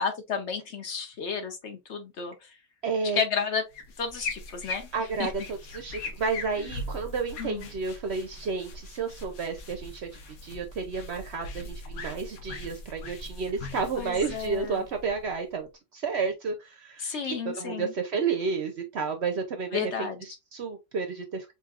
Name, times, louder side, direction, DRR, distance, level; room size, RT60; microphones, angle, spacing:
voice 1, 0.0-2.5 3.1-3.6 4.0-4.9 5.2-5.3 6.6-6.7 7.4-7.7 14.0-14.8 17.0-17.9 19.7-20.2, left 6 dB, 55° left, 1.0 m, -32 dB
voice 2, 2.8-3.2 4.9-21.5, right 5 dB, 60° right, 0.8 m, -31 dB
sound 1, 3.7-15.6, left 2 dB, 75° left, 1.3 m, -40 dB
5.3 x 2.6 x 2.4 m
omnidirectional pair, 1.5 m